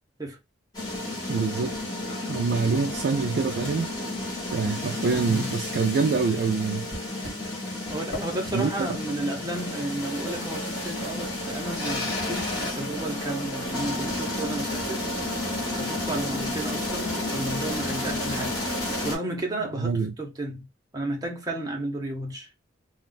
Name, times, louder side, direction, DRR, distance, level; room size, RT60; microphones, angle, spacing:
sound 1, 0.7-19.2, left 1 dB, 20° left, 1.3 m, -31 dB
voice 1, 1.3-1.8 2.3-3.9 4.5-6.9 8.5-8.9 19.8-20.1, right 4 dB, 60° right, 0.3 m, -25 dB
Microwave oven, 2.1-2.6 2.8-5.1 5.5-16.5, equal, 75° left, 1.3 m, -47 dB
voice 2, 5.1-5.5 7.9-15.4 15.8-20.7 20.9-22.5, right 1 dB, 20° right, 0.9 m, -33 dB
2.4 x 2.3 x 3.9 m
head